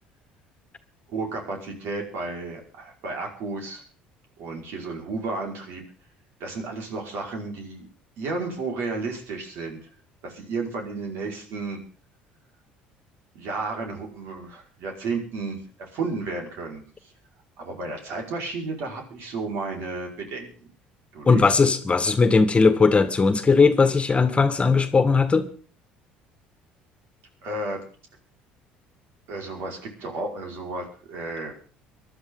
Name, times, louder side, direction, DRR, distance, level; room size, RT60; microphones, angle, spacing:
voice 1, 1.1-3.8 4.4-5.8 6.4-7.9 8.2-9.8 10.2-11.8 13.3-16.8 17.6-20.7 21.1-21.5 27.4-27.8 29.3-31.5, right 3 dB, 65° right, 1 dB, 5.3 m, -32 dB
voice 2, 21.3-25.5, left 4 dB, 25° left, 11 dB, 1.8 m, -18 dB
24.0 x 12.0 x 3.9 m, 0.40 s
hypercardioid pair, 65°, 4 cm